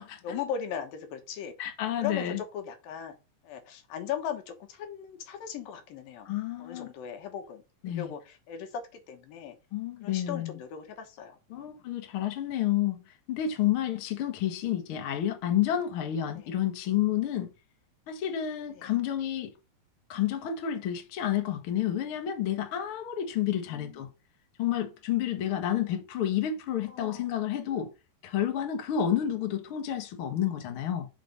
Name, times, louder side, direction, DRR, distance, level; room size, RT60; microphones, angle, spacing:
voice 1, 0.2-1.5 2.0-3.2 3.4-6.3 6.6-9.6 10.0-11.8 16.4-16.5 18.8-18.9 23.7-24.1 26.9-27.3, left 8 dB, 80° left, 2.9 m, -38 dB
voice 2, 1.6-2.4 6.2-6.9 7.8-8.1 9.7-10.6 11.5-13.0 13.3-17.5 18.1-19.5 20.1-24.1 24.6-27.9 28.2-31.1, left 10 dB, 60° left, 1.5 m, -30 dB
5.9 x 5.1 x 5.2 m
omnidirectional pair, 4.0 m